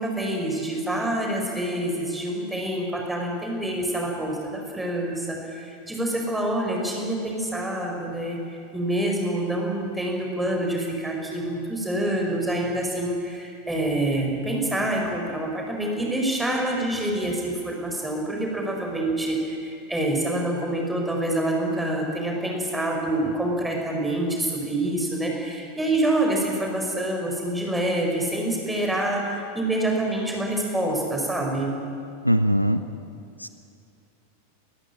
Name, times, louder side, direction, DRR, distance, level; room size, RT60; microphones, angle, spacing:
voice 1, 0.0-31.7, right 1 dB, 5° right, 0 dB, 5.2 m, -26 dB
voice 2, 32.2-32.8 33.4-33.5, equal, 90° right, 11 dB, 0.8 m, -21 dB
23.0 x 14.5 x 8.8 m, 2.6 s
figure-of-eight pair, 90°, 0 cm